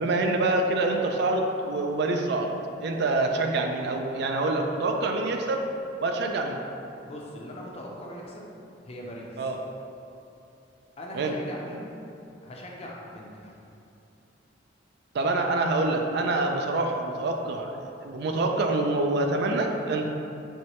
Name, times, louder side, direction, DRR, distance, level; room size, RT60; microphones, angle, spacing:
voice 1, 0.0-2.5 2.8-5.7 6.0-6.6 9.4-9.6 11.1-11.3 15.1-20.1, right 2 dB, 60° right, 3 dB, 0.3 m, -26 dB
voice 2, 7.0-8.5 8.8-9.5 11.0-11.9 12.4-13.6, equal, 35° left, -2 dB, 0.5 m, -40 dB
4.5 x 3.1 x 3.0 m, 2.7 s
head